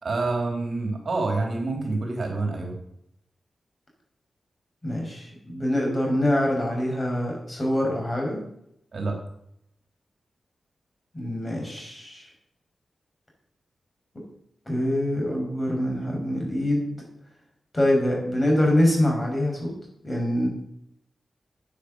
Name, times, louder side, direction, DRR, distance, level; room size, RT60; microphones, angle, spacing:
voice 1, 0.0-2.8 8.9-9.2, right 3 dB, 50° right, 2 dB, 3.7 m, -27 dB
voice 2, 4.8-8.4 11.1-12.3 14.7-17.0 17.7-19.7 20.0-20.5, left 1 dB, 25° left, 0 dB, 6.4 m, -24 dB
11.5 x 9.4 x 8.1 m, 0.75 s
wide cardioid pair, 105°, 0 cm